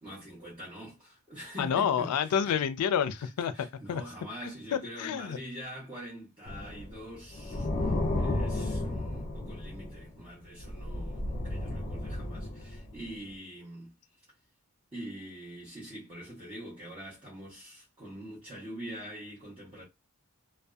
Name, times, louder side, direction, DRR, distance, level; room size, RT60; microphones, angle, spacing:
voice 1, 0.0-2.3 3.5-13.9 14.9-19.8, equal, 25° right, 1.0 m, -44 dB
voice 2, 1.6-4.0 4.4-5.4, left 8 dB, 90° left, 0.4 m, -29 dB
sound 1, 6.5-10.2 10.6-13.2, left 1 dB, 35° left, 0.5 m, -33 dB
2.6 x 2.1 x 2.3 m
head